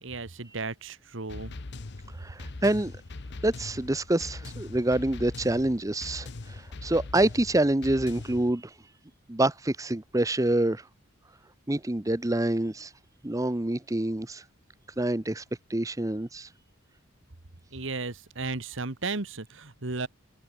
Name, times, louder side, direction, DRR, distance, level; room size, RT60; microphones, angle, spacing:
voice 1, 0.0-1.5 17.7-20.1, right 3 dB, 60° right, 1.6 m, -34 dB
sound 1, 1.3-8.5, left 2 dB, 55° left, 0.9 m, -41 dB
voice 2, 2.2-2.9 3.4-8.7 9.3-10.9 11.7-12.9 13.2-14.4 15.0-15.4 15.7-16.5, right 1 dB, 15° right, 0.7 m, -27 dB
head